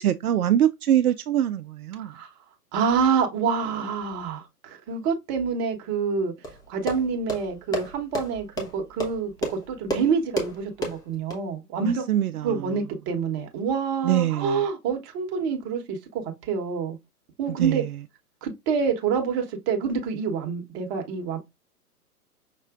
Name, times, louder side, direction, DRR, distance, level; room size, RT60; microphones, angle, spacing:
voice 1, 0.0-2.1 11.8-12.8 14.0-14.6 17.5-18.0, right 11 dB, 70° right, 0.5 m, -24 dB
voice 2, 2.7-6.3 6.7-12.0 12.4-17.0 17.4-17.8 18.4-21.4, right 6 dB, 30° right, 1.1 m, -27 dB
sound 1, 6.4-11.4, right 1 dB, 10° left, 0.8 m, -32 dB
5.8 x 3.0 x 2.4 m
figure-of-eight pair, 120°, 46 cm